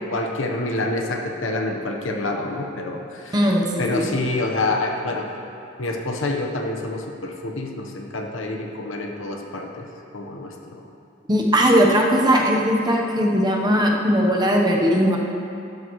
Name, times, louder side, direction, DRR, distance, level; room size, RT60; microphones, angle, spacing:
voice 1, 0.1-3.4 3.8-5.3 5.8-9.9 10.1-10.8, left 2 dB, 65° left, 2 dB, 1.1 m, -27 dB
voice 2, 3.3-4.1 11.3-15.2, equal, 20° right, -1 dB, 1.0 m, -19 dB
12.5 x 12.5 x 3.2 m, 2.6 s
head